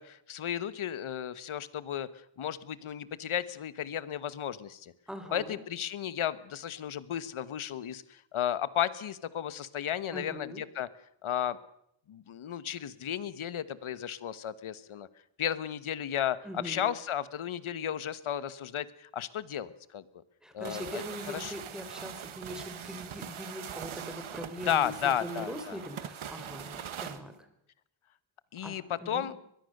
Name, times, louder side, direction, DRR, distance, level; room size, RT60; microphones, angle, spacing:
voice 1, 0.0-4.9 5.3-10.9 11.2-11.6 12.1-15.1 15.4-20.0 20.5-21.5 24.7-25.8 28.5-29.3, left 10 dB, 85° left, 16 dB, 1.4 m, -34 dB
voice 2, 5.1-5.6 10.1-10.6 16.4-16.8 20.4-27.4 28.6-29.3, equal, ahead, 7 dB, 3.8 m, -42 dB
sound 1, 20.6-27.2, right 9 dB, 90° right, 1.7 m, -42 dB
23.0 x 21.0 x 6.7 m, 0.75 s
wide cardioid pair, 140°, 48 cm